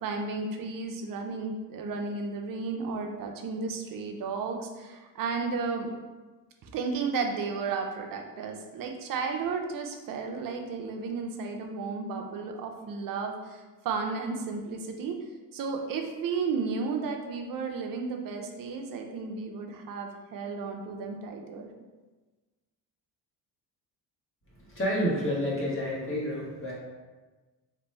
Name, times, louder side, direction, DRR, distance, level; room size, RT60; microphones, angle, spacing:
voice 1, 0.0-5.9 6.6-15.2 15.5-21.7, right 4 dB, 55° right, 3 dB, 0.6 m, -33 dB
voice 2, 24.6-26.7, equal, 30° left, -5 dB, 1.2 m, -29 dB
3.2 x 2.6 x 3.2 m, 1.3 s
cardioid pair, 100°, 41 cm